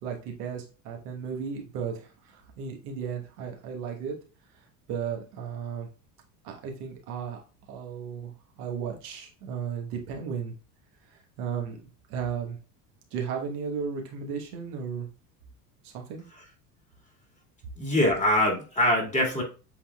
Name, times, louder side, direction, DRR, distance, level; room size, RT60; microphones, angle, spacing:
voice 1, 0.0-4.1 4.5-5.9 6.4-10.5 11.1-11.8 12.1-12.6 13.1-15.1 15.8-16.3, right 6 dB, 75° right, 1 dB, 1.4 m, -35 dB
voice 2, 17.8-19.4, left 1 dB, 15° left, 0 dB, 2.1 m, -23 dB
7.9 x 2.9 x 2.3 m, 0.33 s
hypercardioid pair, 85°, 47 cm